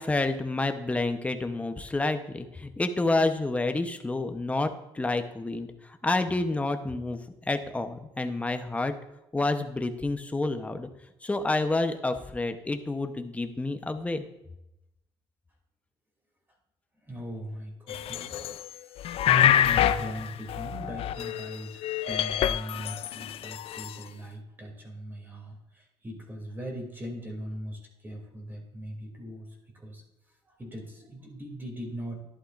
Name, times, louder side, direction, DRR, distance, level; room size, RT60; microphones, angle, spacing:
voice 1, 0.0-8.9 9.3-10.9 11.2-14.3, left 2 dB, 10° left, 7 dB, 0.8 m, -29 dB
voice 2, 17.0-18.6 18.9-30.0 30.5-32.2, equal, 20° right, 0 dB, 2.8 m, -40 dB
sound 1, 17.9-18.7 19.0-21.6 21.8-23.9, left 10 dB, 60° left, 0.4 m, -26 dB
11.5 x 11.5 x 2.5 m, 0.87 s
cardioid pair, 110°, 11 cm